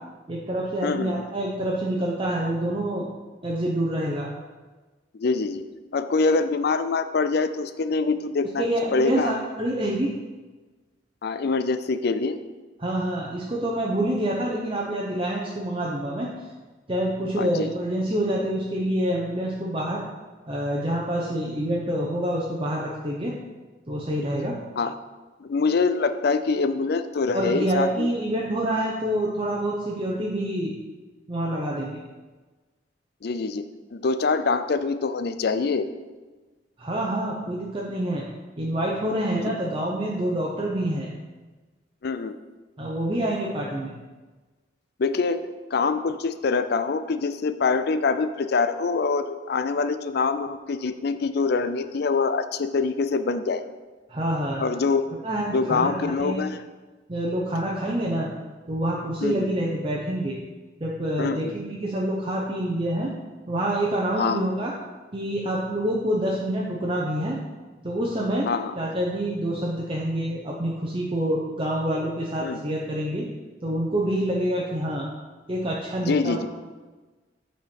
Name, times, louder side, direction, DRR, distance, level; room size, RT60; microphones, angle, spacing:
voice 1, 0.3-3.0 3.4-4.3 8.6-10.1 12.8-16.3 16.9-20.0 20.5-23.4 23.9-24.6 27.3-30.7 31.3-32.0 36.8-38.2 38.6-41.1 42.8-43.9 54.1-54.6 55.2-56.5 57.1-58.3 58.7-60.4 60.8-63.1 63.5-64.7 65.1-67.4 67.8-68.5 68.8-73.3 73.6-75.1 75.5-76.4, right 1 dB, 30° right, -3 dB, 0.8 m, -27 dB
voice 2, 0.8-1.1 5.2-5.6 5.9-8.6 8.9-9.3 11.2-12.4 17.4-17.7 24.8-24.9 25.4-28.1 33.2-33.6 33.9-35.9 42.0-42.4 45.0-45.4 45.7-53.6 54.6-55.0 55.5-56.6 59.2-59.5 61.2-61.5 64.2-64.4 68.5-68.7 72.4-72.6 76.0-76.5, left 4 dB, 55° left, 11 dB, 0.4 m, -24 dB
8.2 x 4.4 x 5.2 m, 1.3 s
head